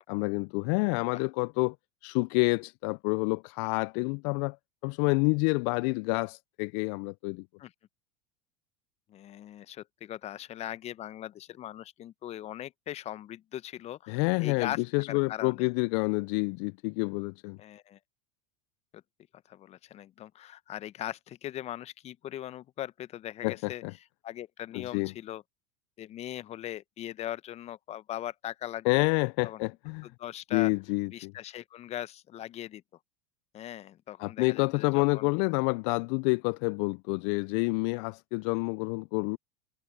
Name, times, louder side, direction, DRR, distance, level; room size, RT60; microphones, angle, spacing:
voice 1, 0.1-1.7 2.0-4.6 4.8-7.4 14.1-17.6 23.4-23.9 24.7-25.1 28.8-30.1 30.5-31.3 34.2-39.4, left 32 dB, 55° left, 0.5 m, -28 dB
voice 2, 9.1-15.7 17.6-18.0 18.9-19.0 19.5-23.8 24.2-25.4 26.0-29.1 29.4-29.6 30.0-30.7 31.1-32.8 33.5-35.3, left 12 dB, 40° left, 1.0 m, -40 dB
hypercardioid pair, 90°, 18 cm